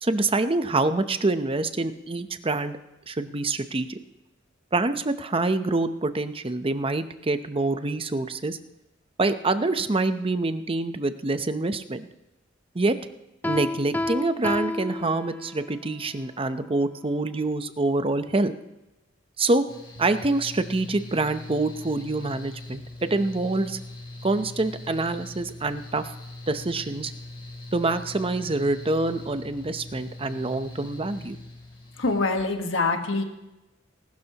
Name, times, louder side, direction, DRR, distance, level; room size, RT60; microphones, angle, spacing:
voice 1, 0.0-2.8 3.1-4.0 4.7-8.6 9.2-12.1 12.7-13.0 13.5-18.5 19.4-19.6 20.0-23.8 24.2-26.1 26.5-27.1 27.7-31.4, right 2 dB, 30° right, 10 dB, 0.7 m, -26 dB
Piano, 13.4-15.7, left 1 dB, 10° left, 0.4 m, -30 dB
Mechanical fan, 19.7-32.2, left 2 dB, 25° left, 3.1 m, -41 dB
voice 2, 32.0-33.2, left 3 dB, 70° left, 5 dB, 1.4 m, -25 dB
19.5 x 12.0 x 2.9 m, 0.96 s
head